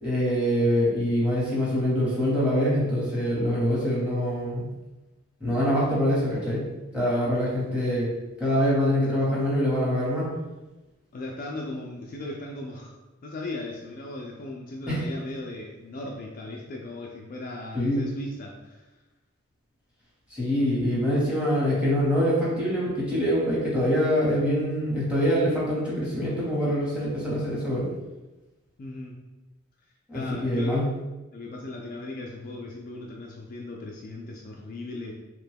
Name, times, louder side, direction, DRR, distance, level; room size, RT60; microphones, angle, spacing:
voice 1, 0.0-4.6 5.4-6.6 6.9-8.1 8.4-10.3 14.9-15.0 17.7-18.0 20.3-27.8 30.1-30.9, equal, 5° right, -7 dB, 0.9 m, -24 dB
voice 2, 11.1-12.9 13.2-18.8 20.6-20.7 28.8-29.2 30.1-30.8 31.3-35.1, left 2 dB, 45° left, -1 dB, 0.3 m, -37 dB
2.9 x 2.2 x 3.3 m, 1.1 s
head